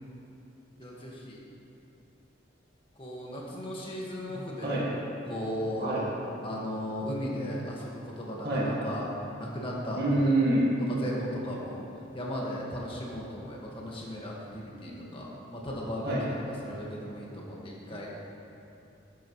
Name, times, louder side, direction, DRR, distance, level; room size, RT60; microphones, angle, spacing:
voice 1, 0.8-1.4 3.0-4.8 5.3-5.9 6.4-9.1 9.4-10.2 10.9-11.9 12.1-16.3 16.6-18.1, equal, 25° left, -4 dB, 1.7 m, -36 dB
voice 2, 4.3-4.9 5.8-6.1 8.4-8.7 10.0-10.7 14.7-15.2 16.0-16.2 17.9-18.1, right 1 dB, 55° right, -6 dB, 2.3 m, -28 dB
12.5 x 10.5 x 3.2 m, 2.9 s
head